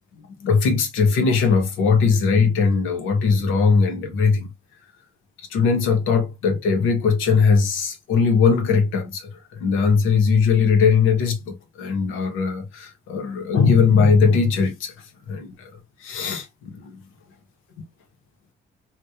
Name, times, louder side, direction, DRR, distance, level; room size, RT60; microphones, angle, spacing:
voice 1, 0.4-4.5 5.5-9.2 9.6-12.6 13.1-14.9 15.3-15.5 16.0-16.4, left 5 dB, 90° left, 0.8 m, -19 dB
2.7 x 2.1 x 2.3 m
cardioid pair, 90°, 20 cm